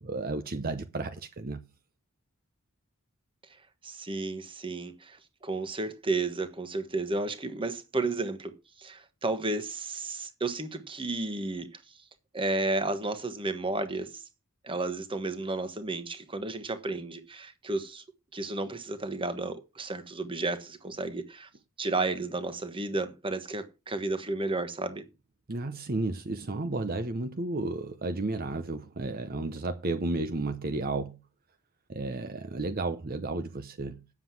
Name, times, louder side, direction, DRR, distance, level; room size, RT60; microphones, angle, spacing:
voice 1, 0.0-1.6 25.5-31.2 31.9-34.0, right 2 dB, 45° right, 0.8 m, -32 dB
voice 2, 3.8-5.2 5.4-8.5 8.8-11.7 12.3-14.2 14.6-18.0 18.3-21.5 21.8-25.0, right 2 dB, 25° right, 1.3 m, -32 dB
9.6 x 7.5 x 5.9 m
head